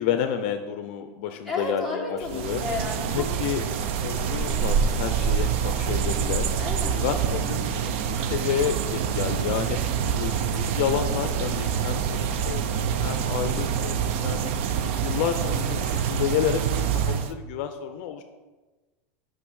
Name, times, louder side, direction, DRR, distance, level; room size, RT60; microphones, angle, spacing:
voice 1, 0.0-2.6 3.1-3.6 3.9-6.5 6.9-18.2, left 9 dB, 50° left, 8 dB, 0.5 m, -30 dB
voice 2, 1.5-3.3 6.6-7.0, left 3 dB, ahead, -2 dB, 1.2 m, -32 dB
sound 1, 2.2-17.3, right 7 dB, 55° right, 0.5 m, -26 dB
6.0 x 5.4 x 6.3 m, 1.2 s
supercardioid pair, 175°, 8 cm